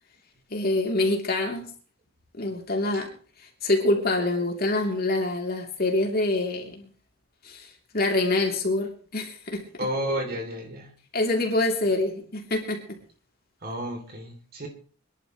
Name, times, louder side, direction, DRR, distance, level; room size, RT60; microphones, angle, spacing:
voice 1, 0.5-1.7 2.3-3.1 3.4-6.9 7.4-9.9 11.1-13.0, left 2 dB, 50° left, 1 dB, 3.1 m, -26 dB
voice 2, 9.8-10.9 13.6-14.7, equal, 45° right, 3 dB, 3.0 m, -31 dB
25.5 x 11.0 x 3.1 m, 0.42 s
head